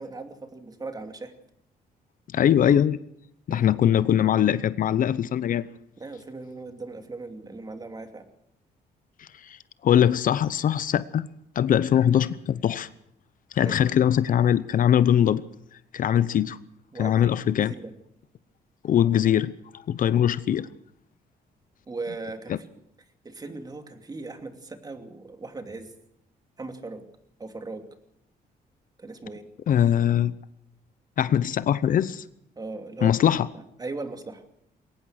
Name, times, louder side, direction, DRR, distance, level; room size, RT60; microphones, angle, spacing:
voice 1, 0.0-1.3 3.5-3.7 6.0-8.2 13.6-13.8 16.9-17.9 21.9-22.7 23.2-25.9 26.6-27.0 27.4-27.9 29.0-29.5 32.6-33.3 33.5-34.4, right 3 dB, 25° right, 7 dB, 2.6 m, -38 dB
voice 2, 2.3-3.0 3.5-5.7 9.2-9.6 9.8-11.3 11.6-12.9 13.5-15.4 15.9-16.6 17.0-17.7 18.8-19.5 19.9-20.7 22.5-22.6 29.7-30.3 31.2-32.2 33.0-33.5, left 10 dB, 60° left, 16 dB, 0.8 m, -21 dB
22.0 x 18.5 x 6.5 m, 0.74 s
cardioid pair, 135°, 16 cm